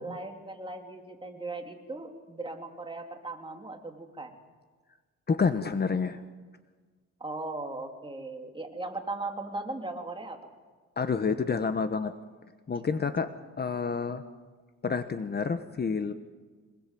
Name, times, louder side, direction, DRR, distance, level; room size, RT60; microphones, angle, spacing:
voice 1, 0.0-4.4 7.2-10.5, right 2 dB, 15° right, 2 dB, 3.6 m, -38 dB
voice 2, 5.3-6.2 11.0-12.1 12.7-14.2 14.8-16.1, left 5 dB, 35° left, 9 dB, 1.3 m, -29 dB
25.5 x 21.0 x 7.8 m, 1.4 s
cardioid pair, 90°, 30 cm